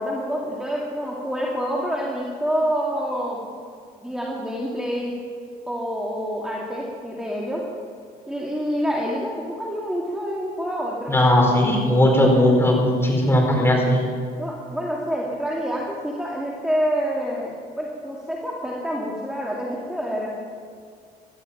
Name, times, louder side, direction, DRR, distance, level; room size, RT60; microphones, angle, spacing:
voice 1, 0.0-3.5 4.0-5.1 5.7-7.6 8.3-11.2 14.4-20.3, equal, 5° right, -3 dB, 2.4 m, -27 dB
voice 2, 11.1-14.1, left 1 dB, 15° left, 0 dB, 4.6 m, -18 dB
17.5 x 12.5 x 5.8 m, 2.2 s
cardioid pair, 110°, 17 cm